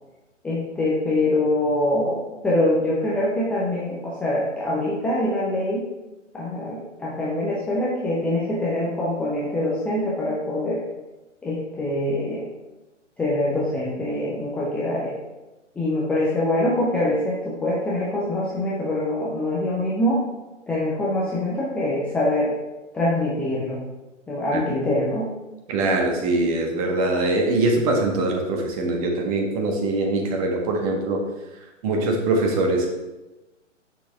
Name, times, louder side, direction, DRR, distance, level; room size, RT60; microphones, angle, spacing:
voice 1, 0.4-5.9 6.3-10.8 11.4-12.5 13.2-15.1 15.8-20.2 20.7-22.5 22.9-23.8 24.3-25.3, left 1 dB, 5° left, -6 dB, 0.6 m, -24 dB
voice 2, 25.7-31.2 31.8-32.9, right 2 dB, 30° right, 2 dB, 1.5 m, -22 dB
10.0 x 6.5 x 3.5 m, 1.1 s
figure-of-eight pair, 125°, 37 cm